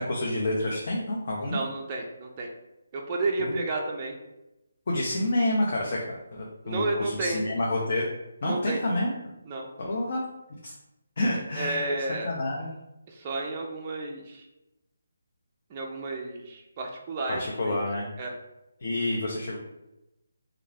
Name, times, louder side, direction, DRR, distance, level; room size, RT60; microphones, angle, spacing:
voice 1, 0.0-1.6 3.4-3.6 4.9-8.1 8.4-9.1 9.8-10.2 10.6-10.7 11.2-11.9 12.2-12.7 17.3-18.1 18.8-19.6, left 1 dB, 50° left, -2 dB, 0.5 m, -28 dB
voice 2, 1.4-2.5 2.9-4.1 6.6-7.4 8.4-8.8 9.5-9.7 11.6-12.3 13.1-14.5 15.7-17.8 18.2-18.3, right 2 dB, 25° right, 0 dB, 0.3 m, -31 dB
2.3 x 2.3 x 3.2 m, 0.94 s
hypercardioid pair, 170°, 0 cm